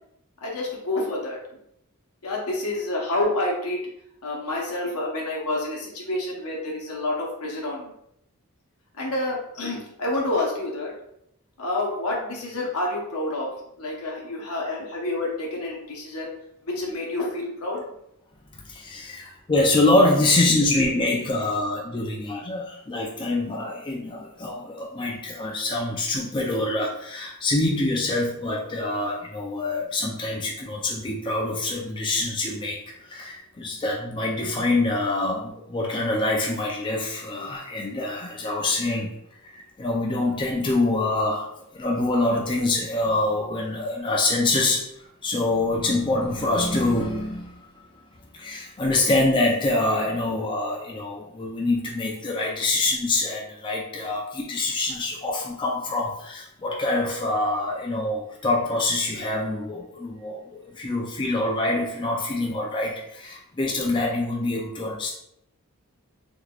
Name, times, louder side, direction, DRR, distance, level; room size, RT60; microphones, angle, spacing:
voice 1, 0.4-1.4 2.2-3.8 4.2-7.9 9.0-10.9 11.6-13.5 13.8-16.3 16.6-17.8, left 2 dB, 80° left, -2 dB, 0.9 m, -28 dB
voice 2, 18.7-32.8 33.1-39.1 39.4-44.9 45.2-47.5 48.3-65.1, left 2 dB, 20° left, -1 dB, 0.4 m, -25 dB
3.5 x 2.9 x 2.3 m, 0.76 s
head